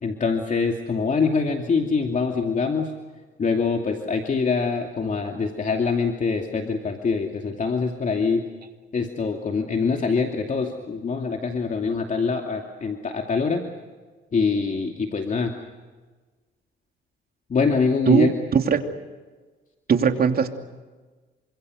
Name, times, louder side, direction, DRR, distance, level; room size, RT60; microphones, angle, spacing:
voice 1, 0.0-2.9 3.4-8.4 8.9-13.6 14.3-15.5 17.5-18.3, left 5 dB, 40° left, 3 dB, 2.6 m, -24 dB
voice 2, 18.1-18.8 19.9-20.5, right 6 dB, 50° right, 5 dB, 2.8 m, -19 dB
28.5 x 25.5 x 6.6 m, 1.3 s
cardioid pair, 90°, 20 cm